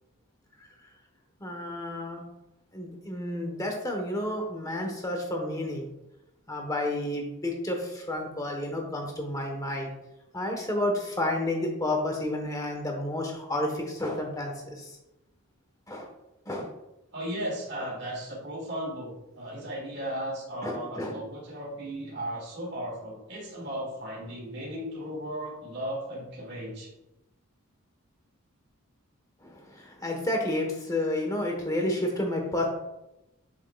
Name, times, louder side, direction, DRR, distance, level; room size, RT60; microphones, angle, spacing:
voice 1, 1.4-2.2 2.7-5.9 6.5-9.9 10.3-14.9 15.9-16.1 16.5-16.7 20.6-21.2 29.4-32.7, left 1 dB, 15° left, 2 dB, 1.0 m, -31 dB
voice 2, 17.1-26.9, equal, 50° right, -4 dB, 2.0 m, -36 dB
7.2 x 6.5 x 2.3 m, 0.92 s
head